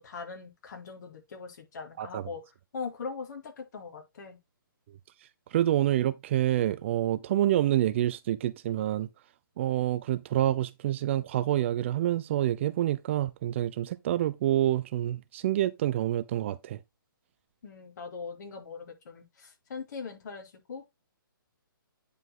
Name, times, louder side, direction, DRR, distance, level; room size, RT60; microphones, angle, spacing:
voice 1, 0.0-2.4 2.7-4.4 17.6-20.9, left 5 dB, 50° left, 4.1 m, -41 dB
voice 2, 2.0-2.3 5.5-9.1 9.6-16.8, right 12 dB, 35° right, 0.5 m, -27 dB
9.6 x 5.1 x 3.7 m
hypercardioid pair, 145°, 12 cm